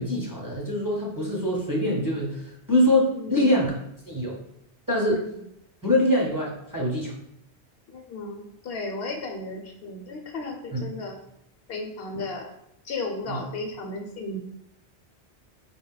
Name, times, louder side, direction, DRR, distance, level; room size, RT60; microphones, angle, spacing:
voice 1, 0.0-3.7 4.1-4.4 4.9-5.2 5.8-7.1 10.7-10.9 13.3-13.4, left 1 dB, 20° right, -4 dB, 0.7 m, -24 dB
voice 2, 3.1-3.7 5.1-5.2 7.9-11.2 11.7-12.5 12.8-14.4, left 2 dB, 65° left, 2 dB, 0.8 m, -34 dB
4.8 x 2.2 x 3.7 m, 0.80 s
omnidirectional pair, 1.2 m